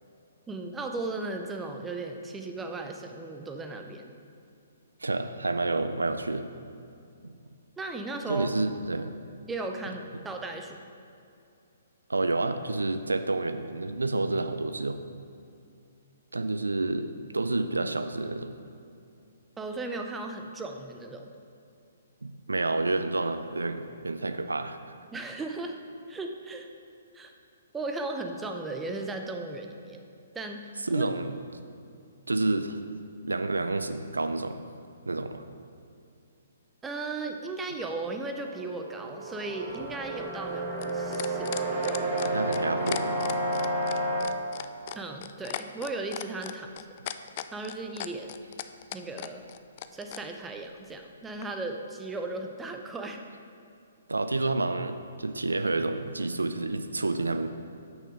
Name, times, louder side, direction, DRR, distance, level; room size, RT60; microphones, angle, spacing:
voice 1, 0.5-4.1 7.8-8.5 9.5-10.8 19.6-21.3 25.1-25.8 26.1-26.7 27.1-27.3 27.7-30.0 30.3-31.1 36.8-42.1 44.9-46.9 47.5-48.3 48.9-49.5 49.9-53.2, right 3 dB, 10° right, 4 dB, 0.6 m, -36 dB
voice 2, 5.0-6.5 7.2-7.3 8.3-9.1 12.1-15.0 16.3-18.5 22.2-24.8 30.9-31.3 32.3-32.8 33.2-34.6 35.1-35.4 42.2-43.1 54.1-57.5, right 2 dB, 85° right, 9 dB, 0.5 m, -29 dB
sound 1, 38.3-44.2, right 1 dB, 25° right, 1.4 m, -31 dB
sound 2, 39.7-50.2 51.4-51.5, left 12 dB, 40° left, 0.3 m, -38 dB
6.5 x 6.3 x 5.0 m, 2.5 s
figure-of-eight pair, 130°, 0 cm